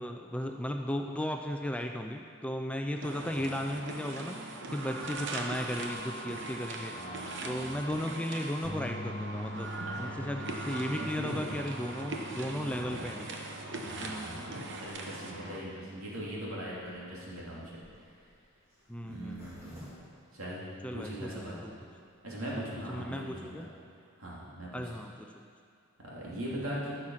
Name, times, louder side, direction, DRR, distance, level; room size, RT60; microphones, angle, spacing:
voice 1, 0.0-7.2 7.4-13.3 14.0-14.4 18.9-19.7 20.8-21.7 22.9-23.7 24.7-25.3, equal, 5° left, 4 dB, 0.4 m, -36 dB
sound 1, 3.0-15.6, right 2 dB, 55° right, 1.0 m, -40 dB
voice 2, 6.9-7.9 9.8-10.4 11.0-11.6 12.7-13.0 13.8-18.2 19.0-19.8 20.3-20.6 20.9-21.6 22.2-23.7 24.2-24.8 26.0-26.9, right 1 dB, 80° right, -6 dB, 2.9 m, -41 dB
sound 2, 8.6-14.9, equal, 65° left, 1.4 m, -44 dB
Zipper (clothing), 16.8-21.1 21.6-21.7 21.9-22.0 22.2-22.5, equal, 15° right, 2.8 m, -54 dB
14.5 x 6.5 x 5.7 m, 2.4 s
head